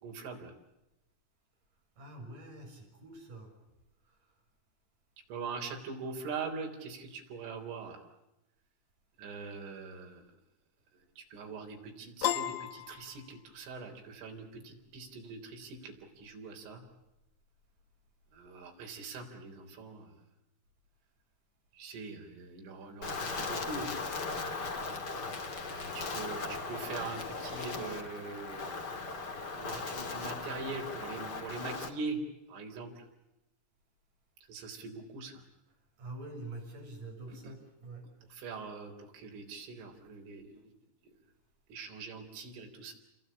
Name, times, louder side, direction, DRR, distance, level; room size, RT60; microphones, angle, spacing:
voice 1, 0.0-0.5 5.3-8.0 9.2-10.2 11.2-16.8 18.4-20.1 21.8-23.9 25.6-28.8 29.5-32.2 32.5-32.9 34.5-35.3 37.3-37.4 38.3-40.7 41.7-42.9, right 4 dB, 80° right, 2 dB, 6.3 m, -42 dB
voice 2, 2.0-3.5 4.0-4.3 35.7-38.1, right 2 dB, 40° right, 1 dB, 7.9 m, -46 dB
Piano, 12.2-13.8, left 12 dB, 65° left, 1.9 m, -34 dB
Wind, 23.0-31.9, left 3 dB, 35° left, 1.6 m, -38 dB
29.0 x 22.5 x 8.8 m, 0.95 s
omnidirectional pair, 5.6 m